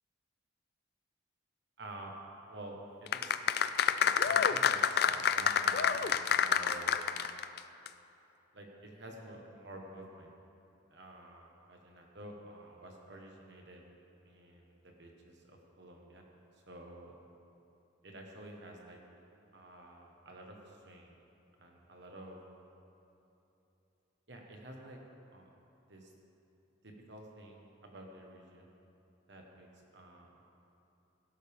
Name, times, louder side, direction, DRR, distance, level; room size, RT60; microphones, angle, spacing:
voice 1, 1.8-2.1 2.5-3.4 3.9-6.1 6.4-7.0 8.5-10.4 10.9-13.8 14.2-16.2 16.7-17.1 18.0-19.0 19.5-21.2 21.6-22.4 24.3-25.0 25.3-25.5 25.9-26.1 26.8-28.7 29.3-30.4, right 1 dB, 60° right, 1 dB, 1.3 m, -50 dB
sound 1, 3.1-7.6 7.9-8.0, left 7 dB, 50° left, 0.4 m, -28 dB
17.0 x 12.0 x 3.6 m, 2.9 s
head